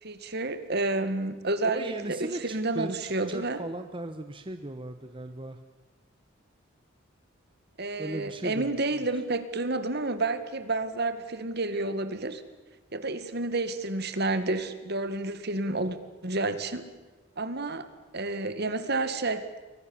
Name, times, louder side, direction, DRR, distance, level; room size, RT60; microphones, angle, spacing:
voice 1, 0.0-3.6 7.8-12.4 12.9-16.0 16.2-16.9 17.4-17.9 18.1-19.4, right 2 dB, 55° right, 11 dB, 2.0 m, -30 dB
voice 2, 1.6-5.6 8.0-9.0, right 1 dB, 25° right, 8 dB, 1.1 m, -37 dB
29.5 x 23.5 x 7.2 m, 1.2 s
head